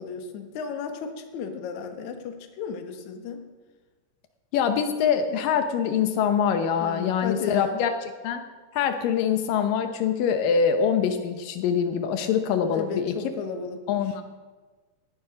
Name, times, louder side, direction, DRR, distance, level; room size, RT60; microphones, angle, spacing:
voice 1, 0.0-3.4 6.8-7.8 12.7-14.0, left 6 dB, 65° left, 5 dB, 2.5 m, -34 dB
voice 2, 4.5-7.9 8.2-8.4 8.7-13.1 13.9-14.2, left 7 dB, 85° left, 7 dB, 2.6 m, -24 dB
18.0 x 12.0 x 5.2 m, 1.3 s
omnidirectional pair, 3.8 m